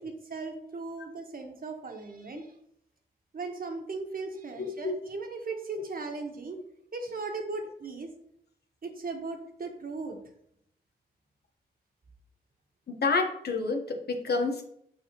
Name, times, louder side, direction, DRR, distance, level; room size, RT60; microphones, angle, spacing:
voice 1, 0.0-2.5 3.3-6.6 6.9-8.1 8.8-10.2, right 3 dB, 55° right, 3 dB, 1.3 m, -37 dB
voice 2, 4.6-4.9 12.9-14.6, left 4 dB, 65° left, 3 dB, 1.2 m, -29 dB
6.6 x 4.9 x 3.0 m, 0.71 s
cardioid pair, 60°, 18 cm